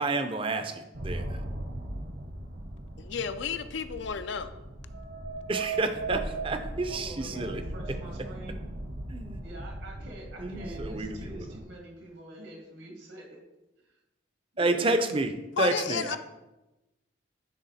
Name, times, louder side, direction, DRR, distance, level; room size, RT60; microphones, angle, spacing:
voice 1, 0.0-1.4 5.5-7.6 9.1-9.4 10.4-11.4 14.6-15.3 15.6-16.2, right 2 dB, 25° right, 0.5 m, -30 dB
sound 1, 0.9-11.6, right 2 dB, 55° right, 1.0 m, -38 dB
voice 2, 3.0-4.5 15.6-16.2, left 7 dB, 70° left, 0.4 m, -32 dB
voice 3, 6.8-8.6 9.4-13.4 13.8-14.0 14.5-14.9, right 1 dB, 80° right, 2.0 m, -46 dB
9.9 x 3.5 x 4.1 m
head